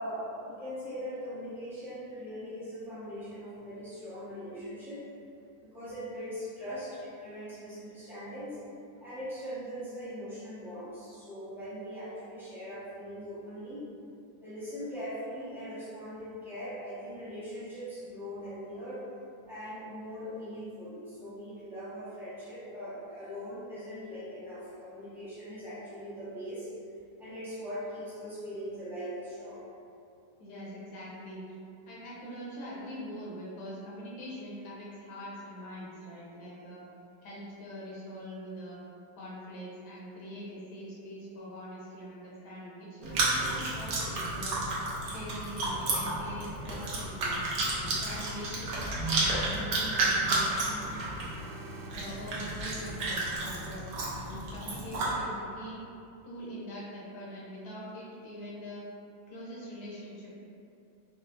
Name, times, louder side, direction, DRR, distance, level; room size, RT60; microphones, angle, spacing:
voice 1, 0.0-5.0 5.3-8.6 9.0-13.9 14.4-19.0 19.5-26.7 27.2-29.7, equal, ahead, -13 dB, 0.5 m, -40 dB
voice 2, 30.4-31.4 31.9-36.8 37.2-38.8 39.2-44.6 45.0-47.4 47.7-50.5 51.9-55.8 56.2-58.8 59.3-60.3, equal, 85° left, -6 dB, 1.7 m, -43 dB
Chewing mastication, 43.0-55.1, right 2 dB, 65° right, 0.9 m, -32 dB
4.4 x 2.8 x 2.5 m, 2.6 s
omnidirectional pair, 2.2 m